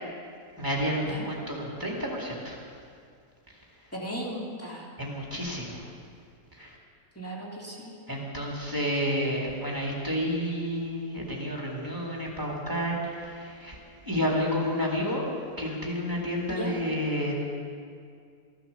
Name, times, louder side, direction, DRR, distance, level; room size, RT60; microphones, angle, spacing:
voice 1, 0.6-2.6 5.0-5.8 6.6-6.8 8.1-13.8 14.0-15.2 15.6-17.3, equal, 15° right, -3 dB, 2.3 m, -30 dB
voice 2, 3.9-4.9 7.2-7.9 16.5-16.7, equal, 10° left, -4 dB, 2.4 m, -36 dB
15.0 x 10.5 x 6.6 m, 2.3 s
omnidirectional pair, 1.6 m